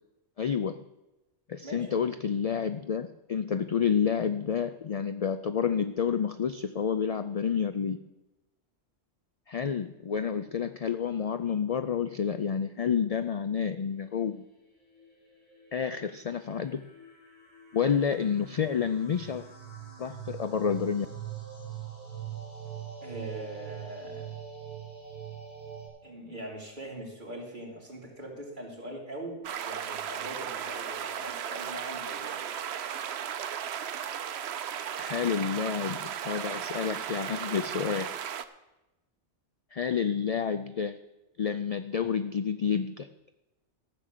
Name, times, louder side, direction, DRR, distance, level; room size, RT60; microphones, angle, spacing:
voice 1, 0.4-0.9 1.5-8.0 9.5-14.5 15.7-16.9 17.7-19.4 20.0-21.1 35.0-38.1 39.7-41.0 41.4-43.1, left 7 dB, 65° left, 11 dB, 0.3 m, -29 dB
sound 1, 14.5-25.9, right 9 dB, 30° left, 5.3 m, -43 dB
voice 2, 23.0-24.3 26.0-32.4, right 1 dB, 45° right, -2 dB, 3.0 m, -41 dB
sound 2, 29.4-38.4, right 9 dB, 70° right, 0.9 m, -35 dB
13.5 x 7.4 x 6.7 m, 0.99 s
omnidirectional pair, 1.2 m